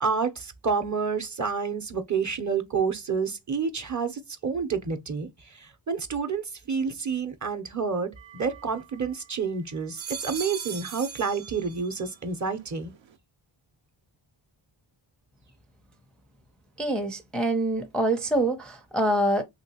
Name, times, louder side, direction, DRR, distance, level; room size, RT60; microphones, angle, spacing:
voice 1, 0.0-12.9, right 5 dB, 35° right, 0.7 m, -29 dB
sound 1, 8.2-9.3 9.8-12.2 12.5-13.1, right 7 dB, 70° right, 0.6 m, -41 dB
voice 2, 16.8-19.4, right 1 dB, ahead, 0.5 m, -25 dB
3.0 x 2.8 x 2.8 m
wide cardioid pair, 70°, 48 cm